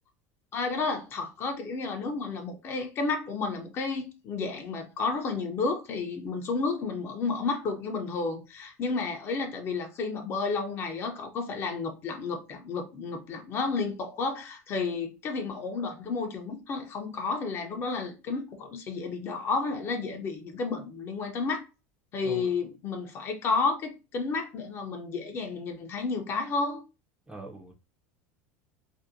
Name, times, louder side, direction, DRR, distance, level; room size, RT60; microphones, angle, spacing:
voice 1, 0.5-21.6 22.1-26.8, left 4 dB, 35° left, 0.6 m, -31 dB
voice 2, 22.2-22.5 27.3-27.7, right 2 dB, 10° right, 0.5 m, -42 dB
2.6 x 2.1 x 2.5 m
supercardioid pair, 125°, 7 cm